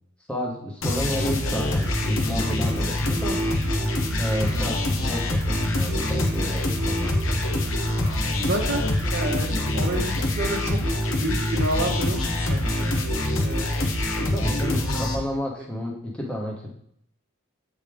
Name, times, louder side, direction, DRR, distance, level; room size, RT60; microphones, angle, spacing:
voice 1, 0.3-3.4 4.2-7.0 14.3-16.7, equal, 5° left, -3 dB, 0.9 m, -31 dB
sound 1, 0.8-15.2, left 1 dB, 70° left, 0.9 m, -25 dB
sound 2, 1.7-14.1 14.4-14.5, equal, 15° right, 1.3 m, -38 dB
voice 2, 8.4-10.8 11.2-13.1 13.4-13.9 14.7-15.1, right 1 dB, 50° right, 1 dB, 0.9 m, -30 dB
8.1 x 3.5 x 3.4 m, 0.69 s
head